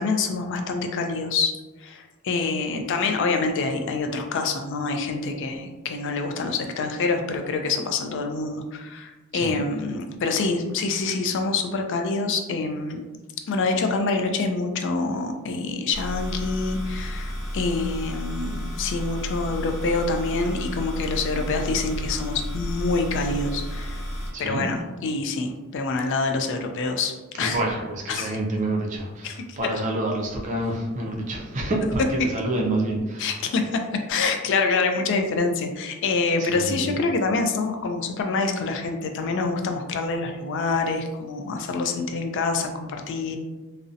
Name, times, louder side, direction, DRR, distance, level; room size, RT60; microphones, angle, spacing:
voice 1, 0.0-1.5 1.8-13.0 13.5-24.0 24.4-27.6 28.1-28.4 29.2-29.4 29.7-29.8 33.2-33.8 34.1-43.4, left 3 dB, 55° left, 4 dB, 0.3 m, -26 dB
sound 1, 15.9-24.3, equal, ahead, 1.1 m, -32 dB
voice 2, 24.3-24.7 27.4-33.3 36.4-36.9, right 1 dB, 35° right, -1 dB, 0.4 m, -28 dB
2.6 x 2.0 x 2.4 m, 1.2 s
head